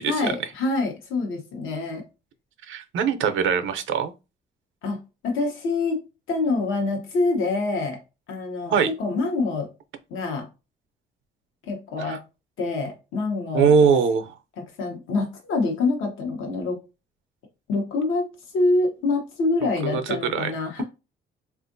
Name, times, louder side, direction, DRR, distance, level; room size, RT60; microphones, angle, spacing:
voice 1, 0.1-2.0 4.8-8.0 8.3-9.7 10.1-10.5 11.6-12.2 12.6-13.9 14.6-16.8 17.7-18.3 18.5-20.8, left 3 dB, 90° left, 0.9 m, -26 dB
voice 2, 2.7-4.1 8.7-8.9 12.0-12.2 13.5-14.3 19.8-20.5, right 6 dB, 80° right, 0.5 m, -21 dB
3.5 x 2.4 x 2.6 m
cardioid pair, 90°, 20 cm